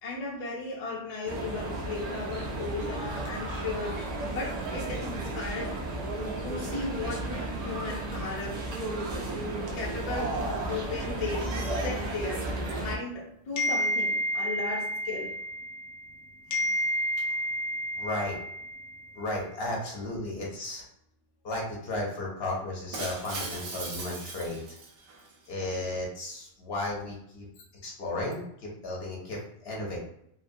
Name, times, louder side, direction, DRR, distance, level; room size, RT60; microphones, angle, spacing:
voice 1, 0.0-5.7 6.4-8.6 9.7-15.3, left 3 dB, 40° left, -3 dB, 0.6 m, -36 dB
sound 1, 1.3-13.0, right 2 dB, 60° right, 0.4 m, -33 dB
sound 2, 13.6-16.2 16.5-19.1, equal, 85° left, 0.9 m, -30 dB
voice 2, 17.9-18.4 19.2-20.8 21.4-24.6 25.5-27.5 27.8-30.0, left 2 dB, 65° left, -2 dB, 0.9 m, -34 dB
Shatter, 22.9-25.3, right 3 dB, 80° right, 0.9 m, -39 dB
2.8 x 2.2 x 2.6 m, 0.74 s
omnidirectional pair, 1.2 m